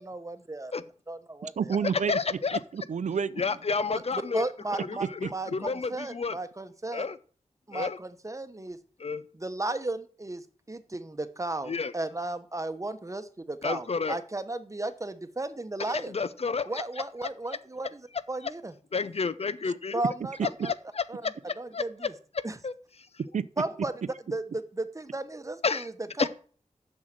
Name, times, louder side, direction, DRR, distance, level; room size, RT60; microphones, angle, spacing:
voice 1, 0.0-0.7 1.1-1.8 3.9-7.1 7.7-8.8 9.3-16.1 16.7-18.7 19.9-20.7 21.1-21.2 21.6-22.1 22.4-22.6 23.6-25.9 26.2-26.3, right 2 dB, 25° right, 1.0 m, -35 dB
voice 2, 1.4-2.2 2.5-3.4 5.0-5.3 23.3-23.4, right 6 dB, 75° right, 0.5 m, -30 dB
voice 3, 2.1-2.6 3.4-4.5 4.8-6.4 6.9-7.2 7.7-8.0 9.0-9.2 11.7-11.9 13.6-14.2 15.9-16.8 18.9-20.0 20.6-21.3 21.7-22.1 22.3-22.7 25.6-25.9 26.2-26.3, left 4 dB, 55° left, 0.7 m, -30 dB
7.5 x 6.3 x 7.5 m
wide cardioid pair, 75°, 12 cm